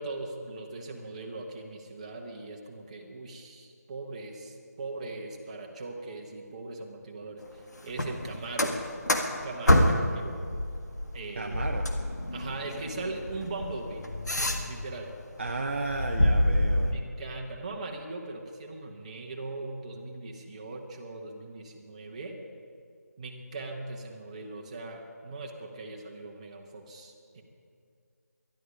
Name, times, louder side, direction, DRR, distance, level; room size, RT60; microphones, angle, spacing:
voice 1, 0.0-8.7 9.3-10.3 11.1-11.7 12.3-14.0 14.3-15.1 16.8-22.3 23.2-27.4, right 2 dB, 25° right, 1 dB, 1.3 m, -40 dB
sound 1, 7.9-10.2 10.5-15.0 15.4-16.9, left 1 dB, 70° left, 1.6 m, -27 dB
voice 2, 11.4-11.9 15.4-17.0, right 3 dB, 40° right, 2 dB, 0.8 m, -33 dB
20.0 x 12.0 x 5.0 m, 2.3 s
figure-of-eight pair, 160°, 9 cm